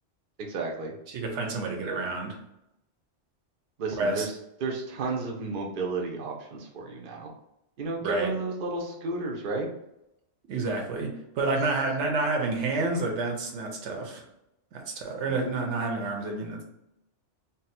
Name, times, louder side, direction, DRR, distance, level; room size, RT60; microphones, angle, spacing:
voice 1, 0.4-0.9 3.8-7.3 7.8-9.7 11.6-11.8 15.3-15.4, right 3 dB, 55° right, 0 dB, 0.7 m, -33 dB
voice 2, 1.1-2.4 4.0-4.3 8.0-8.4 10.5-14.2 14.7-16.6, right 3 dB, 80° right, 1 dB, 1.0 m, -29 dB
2.7 x 2.0 x 4.0 m, 0.84 s
omnidirectional pair, 1.2 m